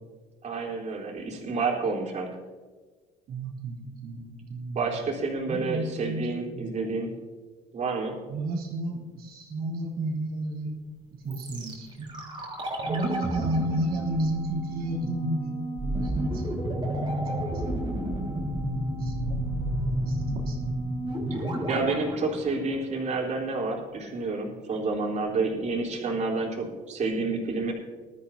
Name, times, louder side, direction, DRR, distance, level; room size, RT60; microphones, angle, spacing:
voice 1, 0.4-2.3 4.7-7.1 7.7-8.2 21.4-27.7, right 3 dB, 45° right, -1 dB, 3.9 m, -29 dB
voice 2, 3.3-4.8 5.4-6.8 8.3-10.8 11.2-12.1 12.8-16.4 17.5-17.6 19.0-19.4 20.0-20.7, right 2 dB, 65° right, -2 dB, 3.1 m, -32 dB
sound 1, 11.3-23.3 23.6-23.7, right 1 dB, 30° right, 3.9 m, -31 dB
20.0 x 13.0 x 2.8 m, 1.4 s
supercardioid pair, 90°, 16 cm